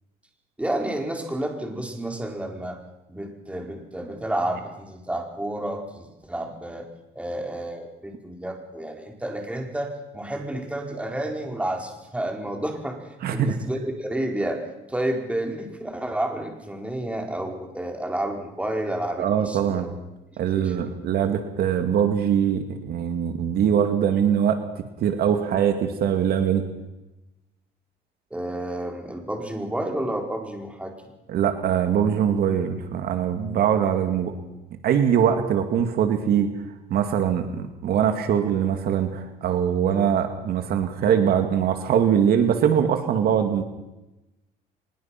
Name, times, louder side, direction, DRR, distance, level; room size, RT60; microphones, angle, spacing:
voice 1, 0.6-2.8 3.1-6.9 7.1-19.9 20.5-20.8 28.3-30.9, right 1 dB, 5° right, 2 dB, 4.5 m, -30 dB
voice 2, 13.2-13.5 19.2-19.9 20.4-24.6 25.0-26.6 31.3-34.3 34.8-36.5 36.9-43.6, right 8 dB, 65° right, 7 dB, 2.2 m, -22 dB
24.5 x 21.0 x 5.9 m, 1.0 s
cardioid pair, 110°, 17 cm